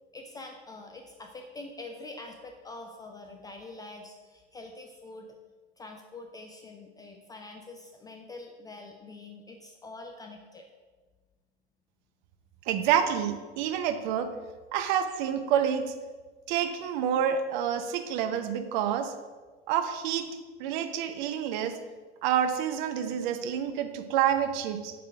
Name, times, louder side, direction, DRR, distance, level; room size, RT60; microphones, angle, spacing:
voice 1, 0.1-5.3 5.8-10.7, left 2 dB, 10° left, 3 dB, 0.4 m, -45 dB
voice 2, 12.7-14.3 14.7-15.9 16.5-19.1 19.7-20.3 20.6-21.7 22.2-24.9, right 9 dB, 45° right, 8 dB, 0.8 m, -28 dB
7.5 x 3.8 x 5.8 m, 1.3 s
figure-of-eight pair, 90°, 33 cm